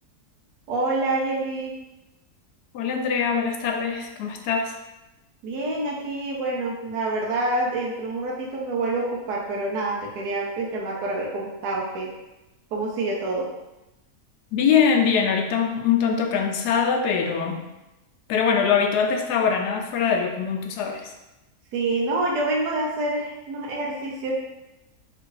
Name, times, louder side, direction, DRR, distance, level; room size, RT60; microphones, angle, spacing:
voice 1, 0.7-1.7 5.4-12.1 12.7-13.5 21.7-24.3, right 2 dB, 85° right, -3 dB, 1.3 m, -27 dB
voice 2, 2.7-4.7 14.5-17.6 18.3-21.1, left 6 dB, 90° left, 3 dB, 1.2 m, -22 dB
3.6 x 2.5 x 4.6 m, 0.97 s
omnidirectional pair, 1.7 m